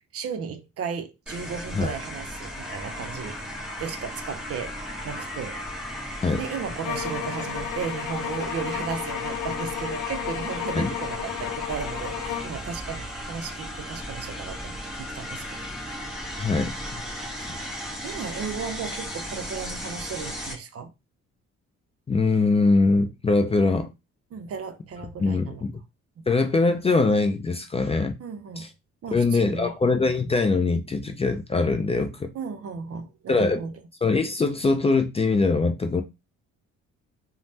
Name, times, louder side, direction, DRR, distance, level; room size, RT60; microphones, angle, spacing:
voice 1, 0.1-3.4 3.8-4.8 5.0-6.1 6.4-16.2 17.4-17.5 18.0-20.9 24.3-25.7 26.2-26.3 28.2-28.7 29.0-29.7 32.3-33.7, right 6 dB, 50° right, 0.5 m, -35 dB
sound 1, 1.3-20.5, equal, ahead, 1.3 m, -36 dB
sound 2, 6.8-12.6, left 11 dB, 80° left, 0.5 m, -33 dB
voice 2, 16.4-16.7 17.5-17.6 22.1-23.9 25.2-25.7 26.3-28.2 28.6-28.7 29.1-32.3 33.3-33.6 34.0-36.0, left 3 dB, 20° left, 0.3 m, -22 dB
3.2 x 2.0 x 2.7 m
cardioid pair, 90°, 30 cm